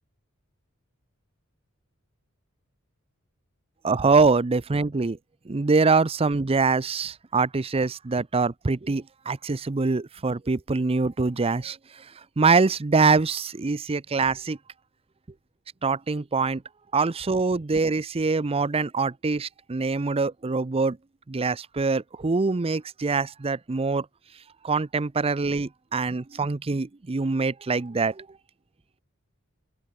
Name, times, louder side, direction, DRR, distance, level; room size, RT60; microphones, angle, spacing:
voice 1, 3.8-5.2 5.5-11.8 12.4-14.6 15.8-16.6 16.9-21.0 21.3-24.1 24.6-28.2, right 4 dB, 30° right, 0.5 m, -24 dB
open air
head